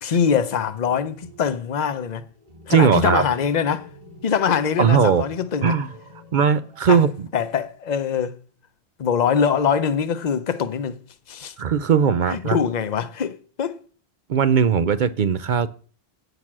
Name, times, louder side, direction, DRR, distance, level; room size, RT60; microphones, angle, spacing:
voice 1, 0.0-2.2 2.7-3.9 4.2-5.8 6.9-7.0 7.3-8.4 9.0-11.0 11.3-11.5 12.3-13.8, left 7 dB, 45° left, 0.8 m, -23 dB
sound 1, 0.8-7.4 7.6-7.7 9.5-10.1 11.2-11.9, left 2 dB, 40° right, 2.6 m, -47 dB
voice 2, 2.7-3.2 4.8-5.3 5.6-5.9 6.3-7.1 11.6-12.6 14.3-15.7, right 6 dB, 55° right, 0.7 m, -18 dB
8.7 x 6.6 x 6.0 m
omnidirectional pair, 1.0 m